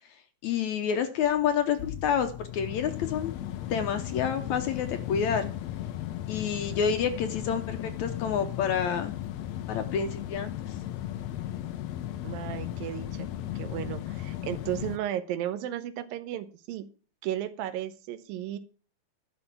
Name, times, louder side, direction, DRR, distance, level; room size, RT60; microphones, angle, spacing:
voice 1, 0.4-3.4 3.7-5.5 6.3-9.1 9.7-10.8, left 7 dB, 70° left, 8 dB, 1.9 m, -28 dB
sound 1, 1.2-15.0, left 12 dB, 85° left, 1.5 m, -36 dB
voice 2, 12.2-13.3 13.6-16.9 17.2-18.6, right 11 dB, 85° right, 11 dB, 2.6 m, -34 dB
12.0 x 5.0 x 7.2 m, 0.39 s
omnidirectional pair, 4.0 m